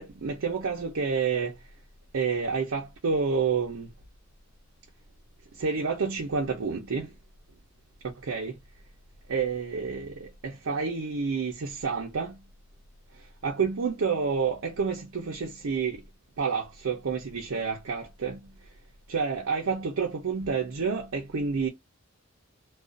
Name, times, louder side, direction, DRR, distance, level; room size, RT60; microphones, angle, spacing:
voice 1, 0.0-1.5 2.1-3.9 5.6-7.1 8.2-8.6 9.3-12.4 13.4-16.0 16.4-18.4 19.1-21.7, right 5 dB, 90° right, 0.6 m, -29 dB
2.4 x 2.3 x 2.4 m
head